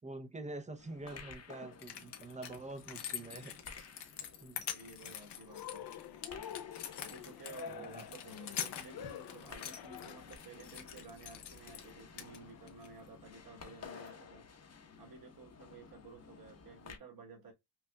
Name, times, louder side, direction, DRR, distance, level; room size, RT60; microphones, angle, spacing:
voice 1, 0.0-3.6 4.4-4.7 7.7-8.0, right 2 dB, 15° right, 0.7 m, -46 dB
sound 1, 0.8-17.0, left 5 dB, 40° left, 1.0 m, -54 dB
sound 2, 1.3-1.4 1.7-11.9 12.2-12.9 13.9-14.1, left 9 dB, 85° left, 1.0 m, -45 dB
voice 2, 4.7-5.9 7.0-14.5 15.0-17.5, right 4 dB, 60° right, 2.2 m, -53 dB
Cheering, 5.5-10.4, left 9 dB, 65° left, 0.6 m, -47 dB
5.7 x 2.5 x 2.2 m
cardioid pair, 120°, 40 cm